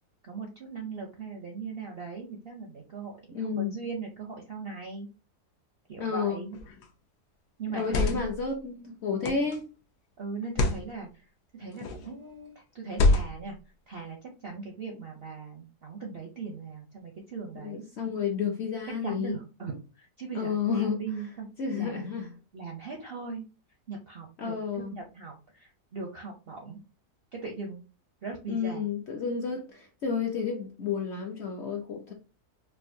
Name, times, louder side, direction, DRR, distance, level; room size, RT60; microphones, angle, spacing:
voice 1, 0.2-5.1 5.9-6.6 7.6-8.5 9.1-9.4 10.2-13.6 13.9-17.8 19.0-21.5 21.7-22.1 22.5-23.4 23.9-26.8 27.3-27.8 28.2-28.9, right 4 dB, 65° right, 2 dB, 0.6 m, -39 dB
voice 2, 3.3-3.7 6.0-6.4 7.7-9.6 17.5-19.3 20.3-21.0 21.6-22.3 24.4-24.9 28.5-32.1, left 6 dB, 60° left, 1 dB, 0.7 m, -31 dB
sound 1, 6.5-6.9 7.7-8.4 9.2-9.6 10.4-10.9 11.7-12.1 12.9-13.5, left 2 dB, 85° left, 1.3 m, -26 dB
4.6 x 2.4 x 2.6 m, 0.32 s
omnidirectional pair, 1.7 m